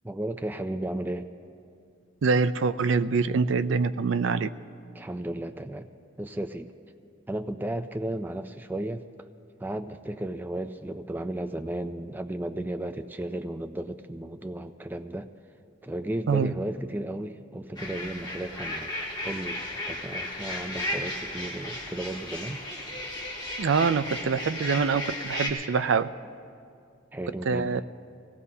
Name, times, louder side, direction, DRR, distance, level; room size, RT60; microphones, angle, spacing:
voice 1, 0.0-1.3 4.9-5.9 6.2-6.7 7.3-9.0 9.6-15.3 15.8-22.6 27.1-27.9, right 1 dB, 10° right, 8 dB, 0.3 m, -34 dB
voice 2, 2.2-4.5 16.3-16.5 23.6-26.1 27.5-27.8, right 5 dB, 75° right, 13 dB, 0.4 m, -25 dB
North Yorks Mallard Frenzy, 17.7-25.5, left 1 dB, 25° left, 2.8 m, -35 dB
24.5 x 17.5 x 2.8 m, 2.4 s
head